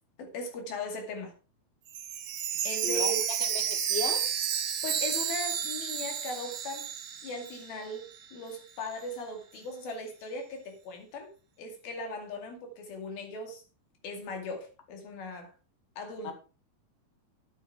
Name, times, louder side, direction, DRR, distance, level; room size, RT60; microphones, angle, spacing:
voice 1, 0.2-1.3 2.6-3.3 4.8-6.9 7.2-11.3 11.6-13.6 14.0-15.5 16.0-16.3, left 2 dB, 85° left, 4.3 m, -38 dB
Chime, 1.9-7.8 8.1-8.2 8.8-8.9, right 9 dB, 65° right, 2.4 m, -31 dB
voice 2, 2.8-3.1 3.4-4.3 16.2-16.3, left 4 dB, 30° left, 1.3 m, -35 dB
11.0 x 8.3 x 4.7 m
omnidirectional pair, 4.1 m